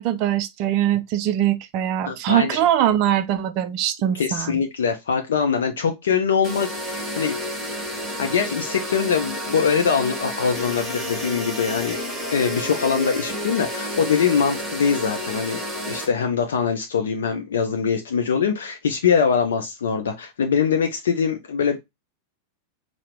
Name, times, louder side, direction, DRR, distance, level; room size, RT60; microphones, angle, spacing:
voice 1, 0.0-4.6, right 11 dB, 40° right, 0.3 m, -22 dB
voice 2, 2.1-2.6 4.1-7.6 8.2-12.0 12.3-21.8, left 6 dB, 65° left, 0.5 m, -23 dB
sound 1, 6.4-16.1, equal, 5° right, 1.3 m, -30 dB
4.6 x 2.0 x 3.3 m
figure-of-eight pair, 90°, 0 cm